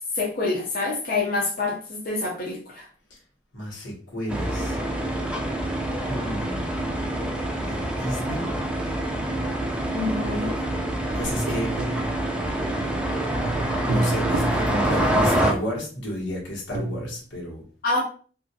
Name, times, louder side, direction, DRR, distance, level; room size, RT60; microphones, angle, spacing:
voice 1, 0.1-2.9 9.9-10.6 17.8-18.0, left 3 dB, 50° left, -3 dB, 0.6 m, -26 dB
voice 2, 3.5-4.8 6.1-6.7 7.6-8.5 11.1-11.7 13.8-17.6, equal, 90° left, -2 dB, 1.2 m, -31 dB
sound 1, 4.3-15.5, right 1 dB, 5° right, 0.4 m, -26 dB
sound 2, 11.4-12.7 13.1-15.3 16.7-17.2, right 2 dB, 70° right, 0.4 m, -31 dB
2.8 x 2.5 x 2.6 m, 0.41 s
head